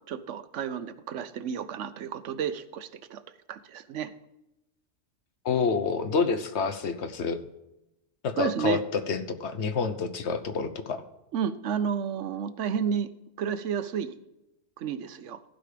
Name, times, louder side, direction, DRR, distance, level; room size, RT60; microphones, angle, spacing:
voice 1, 0.1-3.2 3.5-4.1 8.4-8.8 11.3-13.1 13.4-14.1 14.8-15.4, right 7 dB, 85° right, 12 dB, 1.1 m, -31 dB
voice 2, 5.4-7.4 8.2-11.0, left 5 dB, 70° left, 10 dB, 1.2 m, -28 dB
15.5 x 5.2 x 5.0 m, 0.92 s
omnidirectional pair, 1.2 m